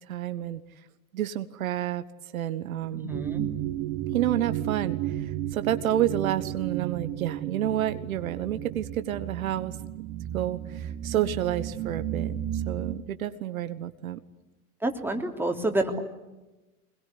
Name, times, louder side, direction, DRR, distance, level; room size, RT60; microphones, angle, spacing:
voice 1, 0.1-0.6 1.1-2.0 2.3-3.1 4.1-9.8 10.3-14.2, right 12 dB, 70° right, 11 dB, 1.4 m, -29 dB
voice 2, 2.9-3.5 14.8-16.0, right 1 dB, 5° right, 4 dB, 3.2 m, -28 dB
sound 1, 3.1-12.9, right 12 dB, 40° right, 1.9 m, -33 dB
25.0 x 21.0 x 9.6 m, 1.1 s
hypercardioid pair, 95°, 44 cm